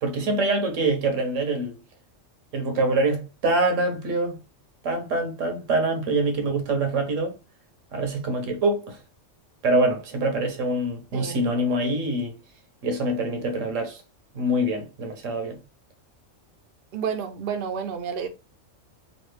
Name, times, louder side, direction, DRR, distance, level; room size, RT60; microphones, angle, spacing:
voice 1, 0.0-1.8 2.5-4.4 4.8-7.4 7.9-9.0 9.6-12.4 12.8-14.0 14.3-15.6, right 2 dB, 75° right, 1.2 m, -25 dB
voice 2, 11.1-11.4 16.9-18.3, right 7 dB, 55° right, 0.7 m, -30 dB
3.1 x 2.5 x 3.2 m
omnidirectional pair, 1.3 m